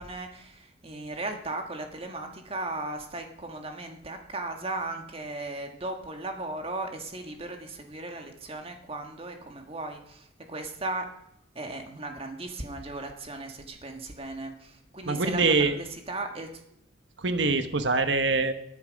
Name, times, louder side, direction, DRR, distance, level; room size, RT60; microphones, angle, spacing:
voice 1, 0.0-11.1 11.5-16.5, right 2 dB, 30° right, 4 dB, 1.6 m, -36 dB
voice 2, 15.1-15.7 17.2-18.5, right 3 dB, 65° right, 9 dB, 1.2 m, -24 dB
19.0 x 10.5 x 5.2 m, 0.76 s
head